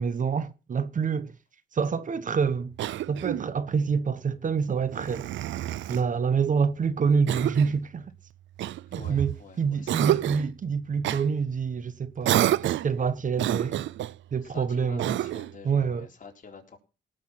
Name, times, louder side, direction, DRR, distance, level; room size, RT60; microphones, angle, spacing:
voice 1, 0.0-1.3 1.7-2.7 3.1-5.3 5.9-8.1 8.9-13.8 14.3-15.1 15.6-16.1, right 6 dB, 40° right, 1.1 m, -27 dB
Cough, 2.8-3.5 4.9-6.1 7.3-7.8 8.6-9.4 9.9-10.5 11.0-11.2 12.2-13.0 13.4-14.2 15.0-15.6, right 13 dB, 75° right, 0.5 m, -28 dB
voice 2, 8.9-10.3 14.4-16.8, left 5 dB, 45° left, 3.9 m, -48 dB
18.0 x 6.5 x 5.8 m
cardioid pair, 100°, 19 cm